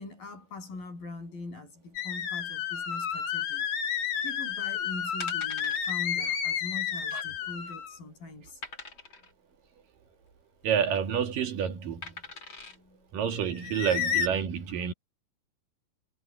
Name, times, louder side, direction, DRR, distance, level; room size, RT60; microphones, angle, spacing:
voice 1, 0.0-3.7 4.2-8.6 12.7-13.0, left 3 dB, 85° left, 9.4 m, -42 dB
sound 1, 1.9-8.0 13.5-14.3, left 8 dB, 55° left, 2.1 m, -31 dB
sound 2, 4.5-4.7 5.2-5.9 6.3-6.4 6.7-6.8 7.4-7.8 8.6-9.3 10.6-11.0 12.0-12.8 13.4-13.5, left 4 dB, 35° left, 3.9 m, -43 dB
voice 2, 10.6-12.2 13.1-14.9, right 8 dB, 75° right, 3.7 m, -29 dB
omnidirectional pair, 4.0 m